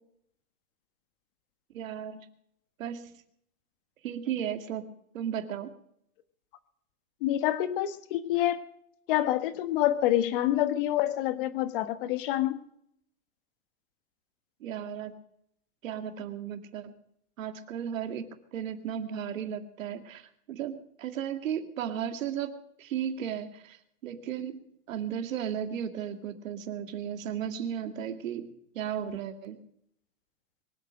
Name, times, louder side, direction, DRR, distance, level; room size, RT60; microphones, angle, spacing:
voice 1, 1.7-2.3 2.8-3.1 4.0-4.9 5.1-5.7 14.6-15.1 15.8-16.9 17.4-24.6 24.9-29.6, right 9 dB, 65° right, 8 dB, 2.2 m, -35 dB
voice 2, 7.2-8.6 9.1-12.6, left 13 dB, 40° left, 12 dB, 1.4 m, -27 dB
23.5 x 8.5 x 6.2 m, 0.72 s
supercardioid pair, 165°, 43 cm